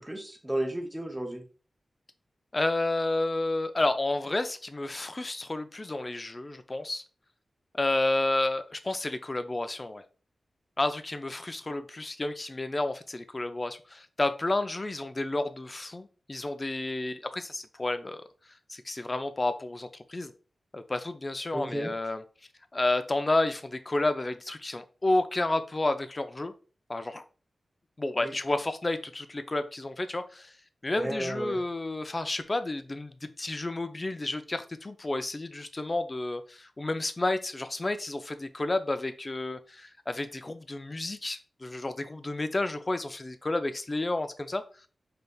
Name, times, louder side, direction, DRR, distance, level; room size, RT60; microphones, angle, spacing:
voice 1, 0.0-1.4 21.5-21.9 28.2-28.3 30.9-31.6, right 1 dB, 10° right, 2 dB, 0.8 m, -33 dB
voice 2, 2.5-7.0 7.7-10.0 10.8-18.2 18.7-20.3 20.7-22.2 22.7-26.5 26.9-27.2 28.0-30.5 30.8-44.6, left 2 dB, 30° left, 9 dB, 0.4 m, -31 dB
5.3 x 3.3 x 2.3 m, 0.37 s
wide cardioid pair, 110°, 0 cm